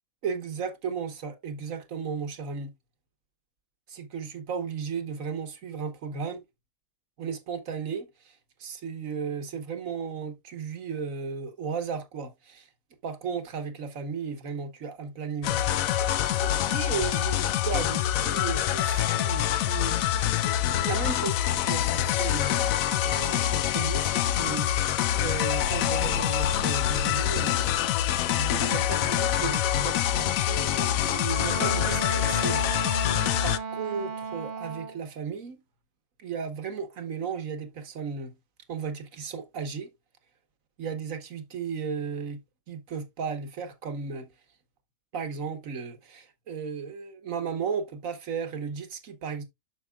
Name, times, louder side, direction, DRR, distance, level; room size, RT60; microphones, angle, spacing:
voice 1, 0.2-2.7 3.9-6.4 7.2-12.7 13.0-20.0 20.8-27.7 28.2-32.6 33.4-35.6 36.2-38.4 38.7-39.9 40.8-42.4 42.7-44.3 45.1-49.4, right 6 dB, 70° right, 1.7 m, -35 dB
sound 1, 15.4-33.6, left 11 dB, 75° left, 1.0 m, -25 dB
Wind instrument woodwind instrument, 31.3-35.0, right 5 dB, 50° right, 0.7 m, -35 dB
9.0 x 6.4 x 2.4 m
omnidirectional pair, 1.5 m